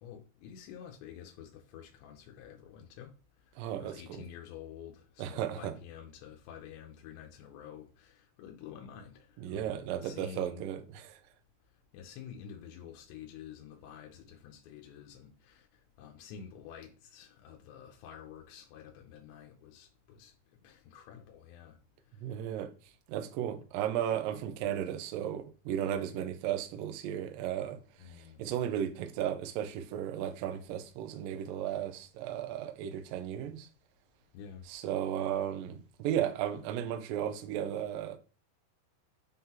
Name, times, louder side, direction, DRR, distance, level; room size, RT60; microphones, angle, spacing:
voice 1, 0.0-3.2 3.8-10.6 11.9-20.3 20.6-21.8 28.0-28.4 34.3-34.7, left 8 dB, 90° left, 3.0 m, -49 dB
voice 2, 3.6-4.3 5.2-5.7 9.4-11.2 22.2-22.7 23.1-33.7 34.6-38.2, right 10 dB, 90° right, 2.0 m, -35 dB
8.7 x 3.8 x 2.9 m
omnidirectional pair, 4.9 m